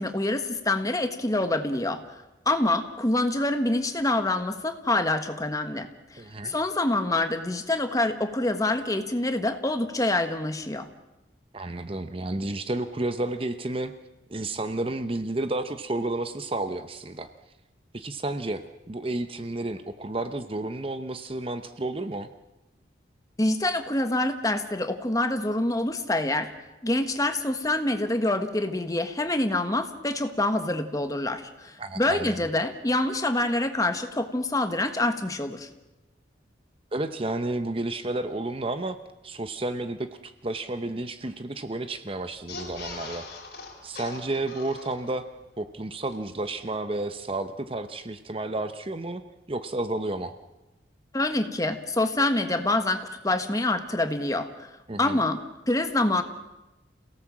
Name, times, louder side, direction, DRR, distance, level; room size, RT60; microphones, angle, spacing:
voice 1, 0.0-2.2 2.4-5.9 6.4-10.9 23.4-26.5 26.8-35.7 51.1-54.7 55.0-55.4 55.7-56.2, left 2 dB, 20° left, 7 dB, 1.4 m, -26 dB
voice 2, 6.2-6.6 11.5-13.9 14.3-17.3 17.9-22.3 31.8-32.5 36.9-39.0 39.2-43.3 43.8-45.3 45.6-49.2 49.5-50.3 54.9-55.2, right 2 dB, 30° right, 9 dB, 0.8 m, -31 dB
sound 1, 42.3-45.3 45.7-45.8 46.0-46.1, left 3 dB, 55° left, 4.4 m, -41 dB
28.0 x 17.5 x 7.4 m, 1.0 s
head